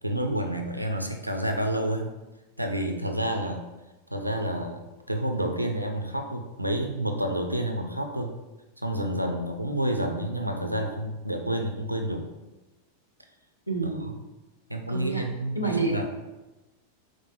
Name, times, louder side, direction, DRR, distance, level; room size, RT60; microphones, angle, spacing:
voice 1, 0.0-2.1 2.6-3.6 4.1-4.8 5.1-8.3 8.8-12.3 14.0-14.1 14.7-16.1, right 1 dB, 90° right, 4 dB, 0.3 m, -29 dB
voice 2, 13.7-14.1 14.9-15.2 15.5-16.1, right 3 dB, 85° left, 0 dB, 0.6 m, -28 dB
4.5 x 2.1 x 3.0 m, 1.1 s
figure-of-eight pair, 90°, 0 cm